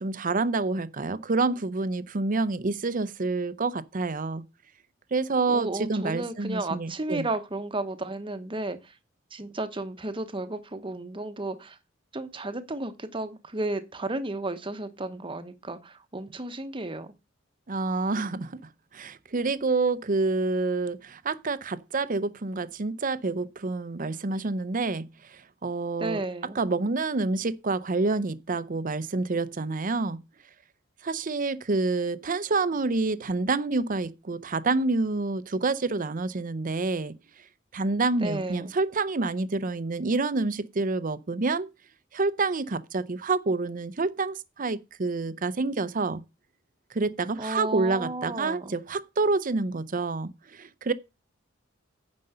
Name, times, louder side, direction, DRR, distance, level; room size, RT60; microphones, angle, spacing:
voice 1, 0.0-4.4 5.1-7.3 17.7-18.6 18.9-26.2 26.6-30.2 31.0-37.1 37.7-41.7 42.1-46.2 46.9-50.9, right 3 dB, 45° right, 0.7 m, -28 dB
voice 2, 5.5-8.9 9.3-11.8 12.1-17.1 26.0-26.6 38.2-38.7 47.4-48.7, right 2 dB, 25° right, 1.0 m, -33 dB
9.4 x 5.3 x 6.7 m
head